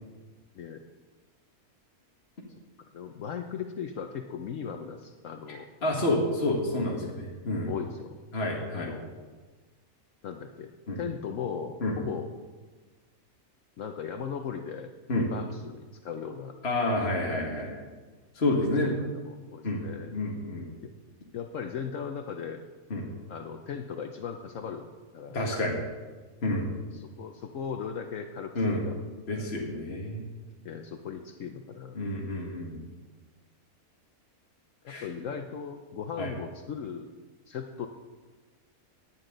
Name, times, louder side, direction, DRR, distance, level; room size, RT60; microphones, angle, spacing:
voice 1, 2.9-5.7 6.8-7.2 7.7-8.2 8.7-9.4 10.2-12.3 13.8-14.9 15.3-16.5 17.6-17.7 18.6-20.2 21.3-22.6 23.3-24.9 25.1-25.4 26.9-28.9 29.3-29.5 30.6-32.0 34.8-37.1 37.5-37.9, left 7 dB, 65° left, 5 dB, 1.1 m, -38 dB
voice 2, 5.5-7.7 8.3-8.9 10.9-11.0 11.8-12.0 15.1-15.3 16.6-17.8 18.3-18.9 19.6-19.8 20.1-20.7 22.9-23.1 25.3-25.8 26.4-26.7 28.6-28.9 29.3-30.3 31.9-32.8 34.9-35.1 36.2-36.3, left 1 dB, 45° left, -2 dB, 2.0 m, -29 dB
19.0 x 9.2 x 3.9 m, 1.3 s
omnidirectional pair, 1.5 m